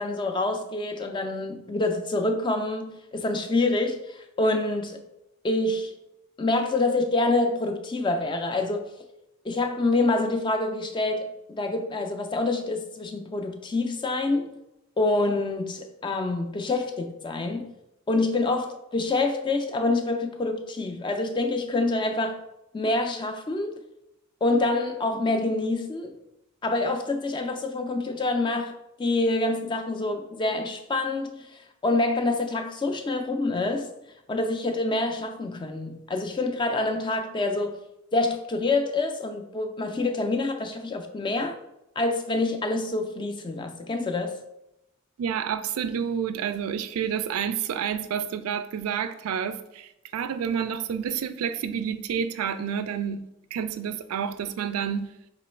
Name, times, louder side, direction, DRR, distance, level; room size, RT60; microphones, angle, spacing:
voice 1, 0.0-5.0 5.4-5.9 6.4-8.9 9.4-14.5 15.0-17.7 18.1-22.4 22.7-23.8 24.4-26.1 26.6-33.9 34.3-37.8 38.1-41.6 42.0-44.4, left 2 dB, 20° left, 0.3 m, -26 dB
voice 2, 45.2-53.2 53.5-55.1, right 7 dB, 80° right, 0.3 m, -29 dB
3.0 x 3.0 x 4.3 m
head